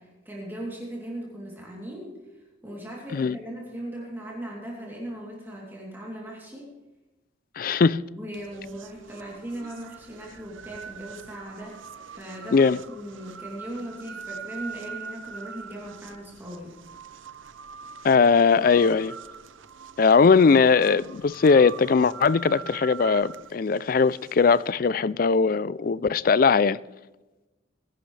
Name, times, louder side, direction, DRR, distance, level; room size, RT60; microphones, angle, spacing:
voice 1, 0.0-6.7 8.1-16.7, right 1 dB, 10° right, 3.0 m, -38 dB
voice 2, 7.6-8.0 12.5-12.8 18.0-19.1 20.0-26.8, left 5 dB, 45° left, 0.4 m, -20 dB
sound 1, 8.3-24.7, right 6 dB, 80° right, 0.7 m, -43 dB
21.0 x 12.0 x 3.3 m
head